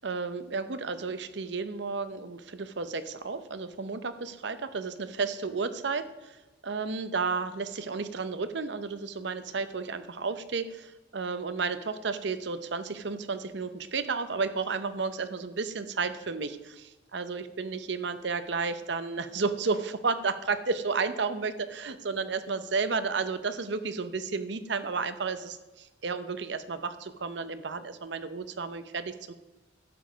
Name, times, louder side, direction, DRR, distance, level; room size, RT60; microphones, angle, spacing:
voice 1, 0.0-6.4 6.6-29.3, right 4 dB, 65° right, 12 dB, 0.7 m, -32 dB
12.0 x 7.3 x 5.1 m, 1.1 s
head